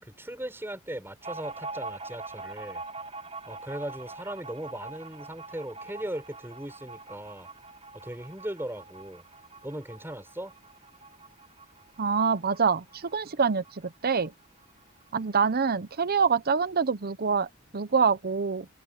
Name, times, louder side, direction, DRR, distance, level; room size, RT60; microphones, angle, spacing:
voice 1, 0.0-2.8 3.5-7.5 7.9-9.2 9.6-10.5, right 1 dB, 10° right, 6.5 m, -38 dB
sound 1, 1.2-14.3 14.6-14.7 15.0-15.8, right 3 dB, 30° right, 3.0 m, -44 dB
voice 2, 12.0-14.3 15.1-18.7, right 5 dB, 45° right, 0.8 m, -26 dB
open air
head